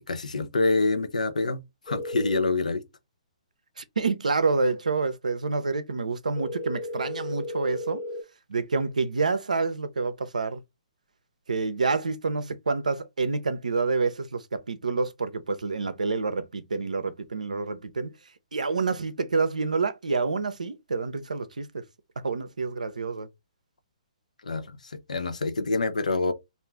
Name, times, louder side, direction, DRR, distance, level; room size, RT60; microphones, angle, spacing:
voice 1, 0.0-1.6 1.9-2.8 24.4-26.3, left 3 dB, 80° left, 0.6 m, -26 dB
sound 1, 1.9-2.4 6.4-8.2, left 1 dB, 30° left, 0.9 m, -34 dB
voice 2, 3.8-8.0 8.5-10.6 11.5-18.1 18.5-21.8 22.2-23.3, right 4 dB, 85° right, 0.5 m, -28 dB
2.4 x 2.4 x 3.3 m
hypercardioid pair, 135°, 4 cm